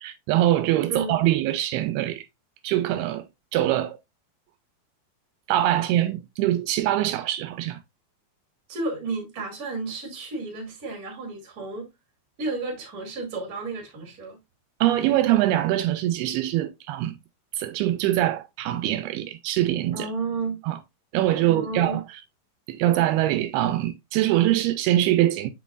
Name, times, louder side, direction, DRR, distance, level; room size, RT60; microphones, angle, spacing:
voice 1, 0.0-2.3 2.6-3.3 3.5-4.0 5.5-7.8 14.8-17.1 17.6-20.1 20.7-20.8 21.1-22.0 22.7-25.5, right 13 dB, 85° right, 2.4 m, -23 dB
voice 2, 8.7-11.9 12.4-14.4 19.9-20.6 21.4-22.0, right 3 dB, 30° right, 2.0 m, -32 dB
7.0 x 6.1 x 2.3 m
omnidirectional pair, 4.5 m